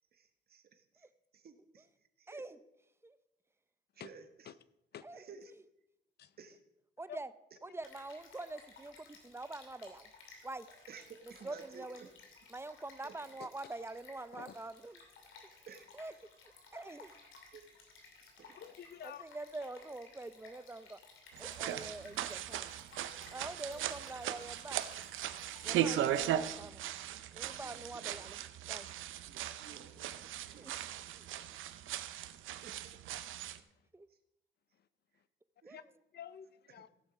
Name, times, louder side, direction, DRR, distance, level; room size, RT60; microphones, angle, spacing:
voice 1, 0.1-1.1 1.3-1.9 2.2-2.5 4.0-4.5 5.1-5.5 6.4-6.6 10.9-11.9 13.0-13.1 15.7-15.9 17.5-17.6 18.2-18.5 23.6-24.0 27.6-28.2 29.3-30.6 31.3-31.4 32.5-32.9 35.6-35.8 36.8-36.9, right 6 dB, 50° right, 8 dB, 1.4 m, -55 dB
voice 2, 2.3-2.6 3.0-3.2 5.0-5.3 7.0-7.3 7.6-10.1 10.4-10.7 11.4-12.1 12.5-15.0 15.9-16.1 16.7-17.1 19.0-21.0 21.4-22.8 23.3-24.8 25.6-26.9 27.3-28.4 28.7-28.9 30.6-30.8 31.1-31.3 33.9-34.1 35.6-35.9, right 2 dB, 10° right, 14 dB, 0.6 m, -45 dB
Stream, 7.8-26.3, left 4 dB, 80° left, 2.7 m, -58 dB
voice 3, 18.5-19.2 35.7-35.8 36.1-36.9, left 9 dB, 55° left, 16 dB, 0.6 m, -48 dB
sound 1, 21.3-33.6, right 11 dB, 80° right, 0.7 m, -38 dB
15.5 x 7.3 x 5.0 m, 0.87 s
cardioid pair, 90°, 20 cm